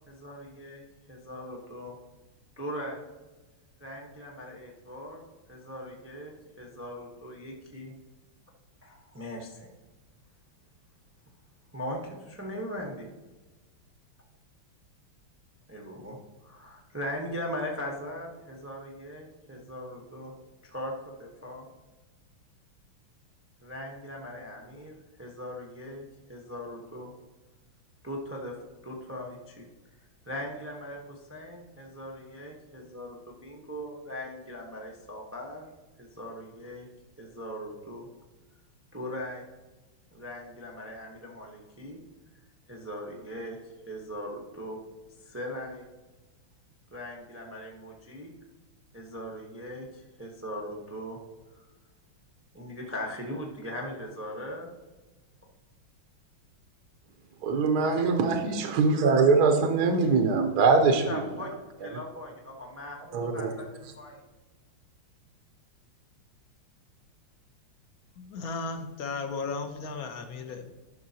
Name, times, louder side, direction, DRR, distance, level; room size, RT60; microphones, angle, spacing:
voice 1, 0.1-2.0 2.6-3.0 3.8-5.2 5.5-7.9 8.8-9.7 11.7-13.1 15.7-20.3 20.6-21.7 23.6-27.1 28.0-28.6 28.8-29.7 30.3-35.6 36.0-36.9 37.2-38.1 38.9-39.4 40.1-42.0 42.7-44.8 45.2-45.8 46.9-48.3 48.9-51.2 51.5-51.6 52.5-54.7 57.7-58.2 60.9-61.5 61.8-63.7 64.0-64.2, equal, 20° right, -1 dB, 0.3 m, -39 dB
voice 2, 57.4-61.2 63.1-63.5, right 4 dB, 65° right, 5 dB, 1.0 m, -23 dB
voice 3, 68.2-70.8, left 4 dB, 65° left, 7 dB, 0.9 m, -35 dB
11.0 x 6.0 x 2.8 m, 1.2 s
omnidirectional pair, 2.3 m